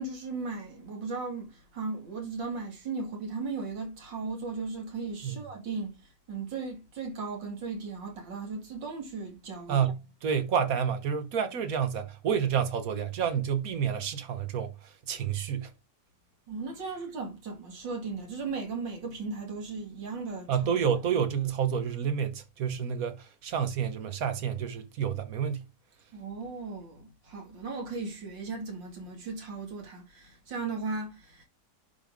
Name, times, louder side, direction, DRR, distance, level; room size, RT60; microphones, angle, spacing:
voice 1, 0.0-5.9 6.3-9.9 16.5-20.5 26.1-31.4, right 4 dB, 85° right, 2.8 m, -36 dB
voice 2, 9.7-15.7 20.5-25.7, right 7 dB, 55° right, 1.3 m, -29 dB
10.5 x 3.5 x 3.6 m
omnidirectional pair, 1.9 m